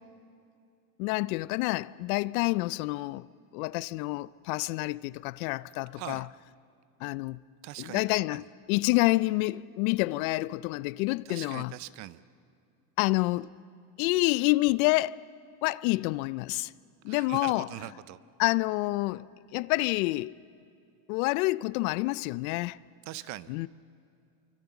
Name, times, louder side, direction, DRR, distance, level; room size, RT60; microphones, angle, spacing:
voice 1, 1.0-3.3 3.5-6.3 7.0-7.4 7.8-11.7 13.0-13.5 14.0-15.2 15.6-16.7 17.0-17.7 18.4-19.2 19.5-20.4 21.1-22.8 23.5-23.7, left 21 dB, 60° left, 0.6 m, -28 dB
voice 2, 6.0-6.3 7.6-8.4 11.3-12.2 17.1-18.2 23.1-23.7, right 15 dB, 35° right, 0.5 m, -42 dB
27.5 x 24.5 x 7.1 m
supercardioid pair, 140°, 49 cm